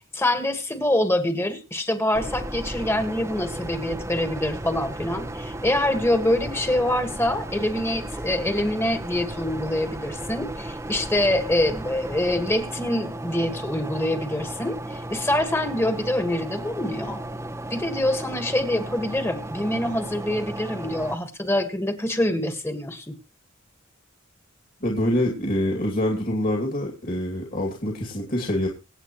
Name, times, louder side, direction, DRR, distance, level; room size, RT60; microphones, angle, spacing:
voice 1, 0.1-17.2 17.7-23.2, left 1 dB, 10° left, 8 dB, 1.6 m, -25 dB
sound 1, 2.1-21.2, right 1 dB, 15° right, 0.7 m, -35 dB
voice 2, 24.8-28.7, left 1 dB, 40° left, 0 dB, 2.5 m, -25 dB
25.0 x 8.4 x 3.1 m, 0.31 s
head